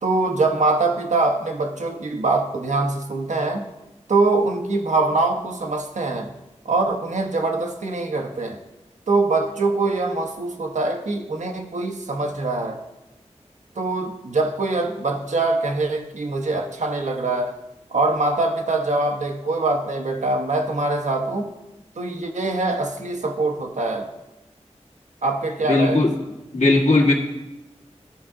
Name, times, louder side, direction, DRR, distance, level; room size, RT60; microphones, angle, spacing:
voice 1, 0.0-3.6 4.1-6.3 6.6-8.6 9.1-12.8 13.8-17.6 17.9-21.5 22.0-24.1 25.2-26.1, right 3 dB, 85° right, 3 dB, 0.9 m, -23 dB
voice 2, 25.7-26.1 26.5-27.1, left 2 dB, 75° left, -2 dB, 1.6 m, -17 dB
14.0 x 4.7 x 3.7 m, 0.97 s
wide cardioid pair, 50°, 12 cm